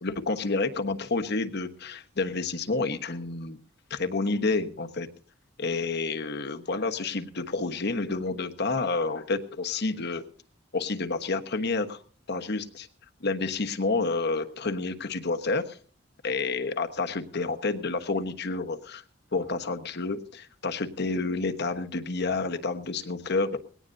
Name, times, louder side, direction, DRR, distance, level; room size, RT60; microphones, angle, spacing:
voice 1, 0.0-3.6 3.9-5.1 5.6-10.2 10.7-12.0 12.3-12.9 13.2-15.8 16.2-19.0 19.3-23.6, left 3 dB, 60° left, 7 dB, 1.2 m, -29 dB
20.5 x 17.5 x 2.7 m, 0.41 s
head